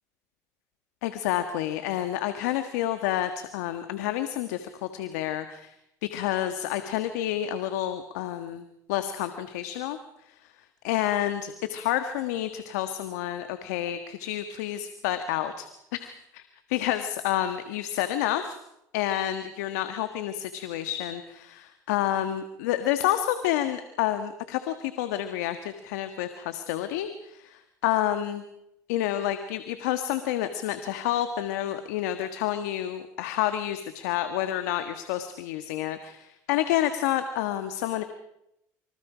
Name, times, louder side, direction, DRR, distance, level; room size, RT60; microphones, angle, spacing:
voice 1, 1.0-5.7 6.0-10.0 10.3-10.4 10.8-16.4 16.7-18.6 18.9-28.4 28.9-38.0, left 12 dB, 85° left, 9 dB, 1.6 m, -29 dB
26.0 x 26.0 x 5.1 m, 0.81 s
supercardioid pair, 80°, 9 cm